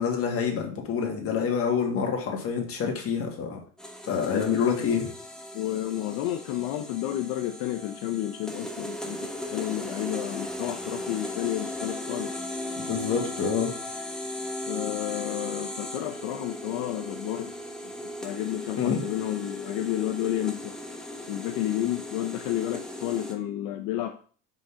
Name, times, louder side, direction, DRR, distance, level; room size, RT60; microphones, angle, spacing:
voice 1, 0.0-3.6 4.0-5.1 12.8-13.7 18.8-19.0, left 6 dB, 40° left, 2 dB, 1.8 m, -27 dB
sound 1, 3.8-23.3, left 1 dB, ahead, 0.8 m, -37 dB
voice 2, 5.5-12.4 14.7-17.6 17.8-20.8 21.3-24.2, left 13 dB, 75° left, 5 dB, 0.7 m, -31 dB
5.2 x 3.7 x 5.6 m, 0.43 s
cardioid pair, 135°, 34 cm